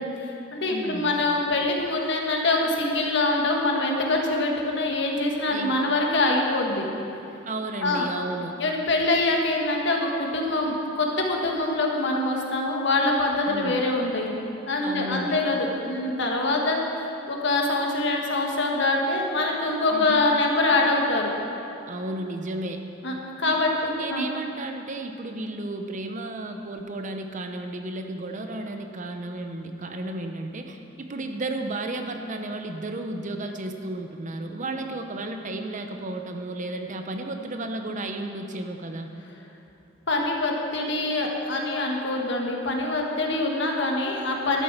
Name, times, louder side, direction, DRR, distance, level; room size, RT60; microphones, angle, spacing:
voice 1, 0.0-6.9 7.8-8.0 8.6-14.4 14.6-21.3 23.0-23.7 24.1-24.3 34.7-34.8 40.1-44.6, left 2 dB, 60° left, 0 dB, 1.6 m, -24 dB
voice 2, 0.7-1.1 5.5-5.7 7.5-8.6 13.5-13.8 14.8-15.4 19.9-20.3 21.9-22.8 23.4-39.1, right 2 dB, 40° right, 5 dB, 0.7 m, -33 dB
12.0 x 8.2 x 6.0 m, 2.9 s
head